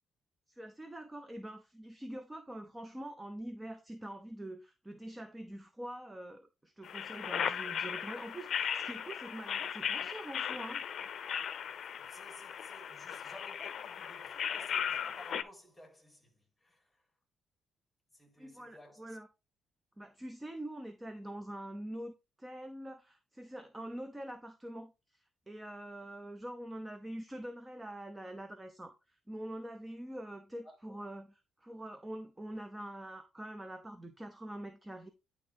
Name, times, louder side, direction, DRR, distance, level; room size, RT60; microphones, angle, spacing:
voice 1, 0.5-10.8 18.4-19.3 20.0-22.1 22.4-35.1, right 1 dB, 15° right, 0.7 m, -45 dB
sound 1, 6.8-15.4, left 8 dB, 60° left, 0.6 m, -37 dB
voice 2, 12.0-17.0 18.1-19.2 30.6-30.9, left 1 dB, 5° left, 4.4 m, -56 dB
10.5 x 3.7 x 3.6 m
cardioid pair, 90°, 0 cm